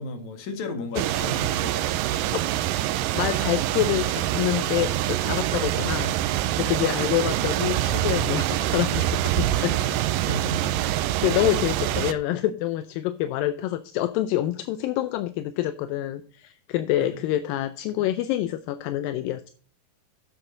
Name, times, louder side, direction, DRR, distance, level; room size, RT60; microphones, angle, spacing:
voice 1, 0.0-2.1 6.6-6.8 9.7-10.7 17.0-17.1 18.0-18.1, left 2 dB, 60° left, 2.7 m, -35 dB
sound 1, 1.0-12.1, right 13 dB, 85° right, 2.3 m, -25 dB
voice 2, 3.1-6.1 6.6-9.8 11.2-19.5, left 14 dB, 80° left, 2.3 m, -26 dB
10.0 x 7.9 x 3.9 m
omnidirectional pair, 4.1 m